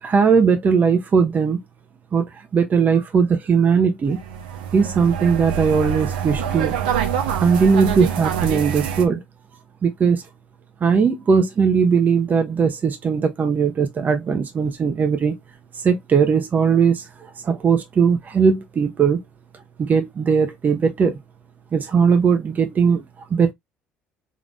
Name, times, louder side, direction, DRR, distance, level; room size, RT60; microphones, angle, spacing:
voice 1, 0.0-1.6 2.1-4.2 4.7-6.8 7.4-9.2 9.8-10.2 10.8-15.3 15.7-19.2 19.8-21.2 21.7-23.5, right 6 dB, 40° right, 0.9 m, -19 dB
sound 1, 4.1-9.1, right 8 dB, 85° right, 0.8 m, -25 dB
3.8 x 3.6 x 2.4 m
hypercardioid pair, 65°, 5 cm